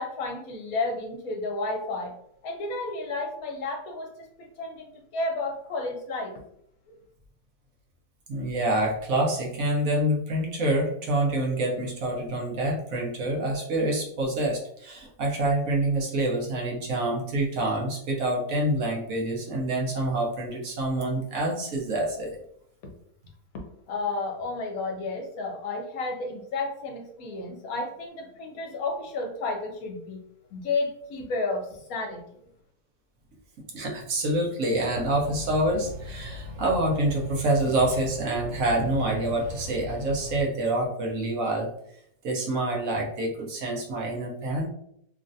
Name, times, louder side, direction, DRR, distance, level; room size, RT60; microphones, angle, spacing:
voice 1, 0.0-2.1 2.4-6.3 6.9-7.0 23.9-30.2 30.5-32.2, left 3 dB, 70° left, 3 dB, 1.0 m, -32 dB
voice 2, 8.3-22.4 33.7-41.7 42.2-44.7, right 1 dB, 65° right, -2 dB, 1.1 m, -27 dB
sound 1, 34.9-40.4, left 1 dB, 85° right, 1.3 m, -38 dB
3.1 x 2.4 x 2.5 m, 0.72 s
omnidirectional pair, 1.6 m